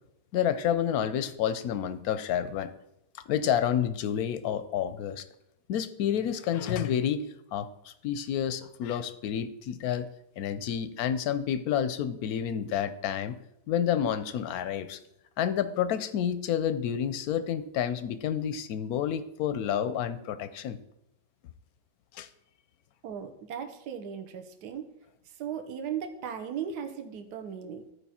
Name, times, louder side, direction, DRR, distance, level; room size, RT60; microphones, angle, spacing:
voice 1, 0.3-2.7 3.3-5.3 5.7-7.2 7.5-10.1 10.4-13.4 13.7-15.0 15.4-20.8 22.1-22.3, left 9 dB, 70° left, 12 dB, 0.9 m, -29 dB
voice 2, 23.0-24.9 25.3-27.8, right 8 dB, 65° right, 7 dB, 1.4 m, -37 dB
13.5 x 4.8 x 4.3 m, 0.83 s
omnidirectional pair, 1.9 m